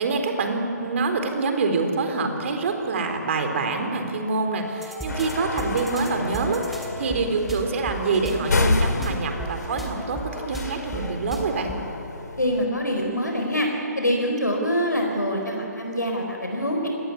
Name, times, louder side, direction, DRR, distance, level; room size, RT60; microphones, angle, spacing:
voice 1, 0.0-11.7, right 3 dB, 45° right, 5 dB, 4.0 m, -26 dB
sound 1, 4.6-11.7, right 2 dB, ahead, 2.7 m, -36 dB
sound 2, 5.1-12.6, left 3 dB, 70° left, 2.5 m, -30 dB
voice 2, 12.4-13.7 14.0-16.9, equal, 90° left, 2 dB, 4.5 m, -25 dB
27.0 x 19.0 x 9.7 m, 3.0 s
figure-of-eight pair, 135°, 9 cm